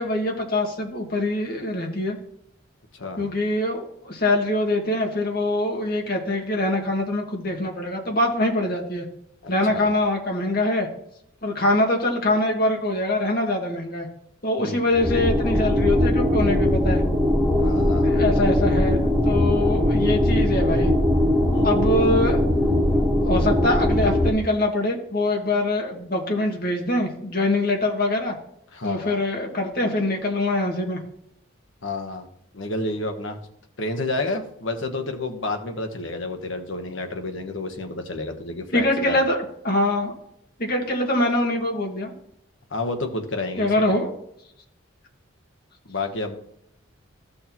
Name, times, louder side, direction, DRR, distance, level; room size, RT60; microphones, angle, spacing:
voice 1, 0.0-2.2 3.2-9.1 9.5-10.9 11.4-14.1 14.4-17.0 18.0-20.9 21.6-22.4 23.2-28.4 28.8-31.0 38.7-39.4 39.6-40.1 40.6-42.1 43.6-44.1, left 1 dB, 45° left, 1 dB, 1.8 m, -24 dB
voice 2, 2.9-3.4 9.4-9.9 14.6-14.8 17.6-18.1 21.5-21.7 28.7-29.2 31.8-32.3 32.5-33.4 33.8-39.2 42.7-44.0 45.9-46.4, left 2 dB, 70° left, 5 dB, 1.3 m, -30 dB
sound 1, 14.9-24.3, left 1 dB, ahead, 1.3 m, -20 dB
14.0 x 6.4 x 3.1 m, 0.74 s
head